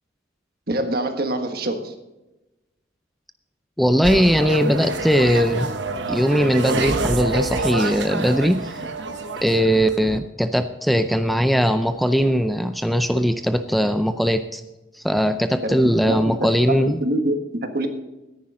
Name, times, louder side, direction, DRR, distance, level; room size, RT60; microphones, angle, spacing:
voice 1, 0.7-1.9 15.6-17.9, right 1 dB, 55° right, 6 dB, 1.5 m, -25 dB
voice 2, 3.8-5.7 6.1-8.7 9.4-14.6 14.9-17.0, equal, ahead, 9 dB, 0.5 m, -20 dB
sound 1, 4.0-10.2, right 2 dB, 75° right, 1.1 m, -27 dB
13.5 x 10.5 x 3.8 m, 1.0 s
head